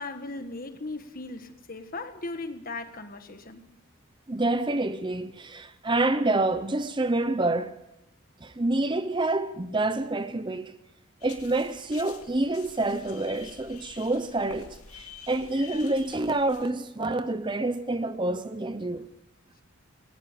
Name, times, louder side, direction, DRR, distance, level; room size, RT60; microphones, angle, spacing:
voice 1, 0.0-3.7 18.9-19.0, left 2 dB, 40° left, 1.6 m, -38 dB
voice 2, 4.3-7.8 8.4-10.7 11.2-19.0, right 2 dB, 20° right, 0.6 m, -27 dB
sound 1, 11.2-16.7, left 6 dB, 85° left, 2.2 m, -48 dB
19.5 x 19.5 x 6.9 m
head